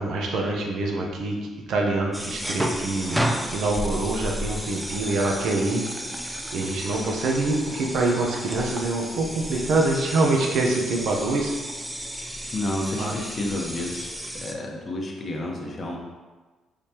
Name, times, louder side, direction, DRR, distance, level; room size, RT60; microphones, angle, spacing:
voice 1, 0.0-3.2 3.5-5.8 6.5-11.5 13.0-13.1, right 2 dB, 70° right, 0 dB, 0.8 m, -25 dB
sound 1, 2.1-14.5, equal, 5° right, 0.4 m, -32 dB
voice 2, 12.5-16.0, left 1 dB, 35° left, -1 dB, 0.8 m, -30 dB
4.8 x 3.4 x 2.9 m, 1.3 s
cardioid pair, 90°, 0 cm